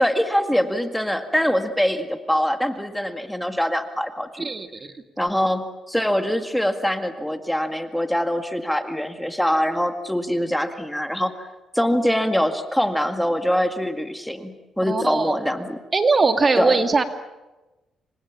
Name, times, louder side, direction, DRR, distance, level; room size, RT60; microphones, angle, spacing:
voice 1, 0.0-4.5 5.2-11.5 11.7-15.8 16.6-16.8, equal, 5° left, 7 dB, 2.0 m, -23 dB
voice 2, 4.4-4.9 14.9-15.4 15.9-17.0, right 3 dB, 30° right, 7 dB, 2.0 m, -20 dB
28.5 x 24.5 x 7.3 m, 1.1 s
cardioid pair, 95°, 0 cm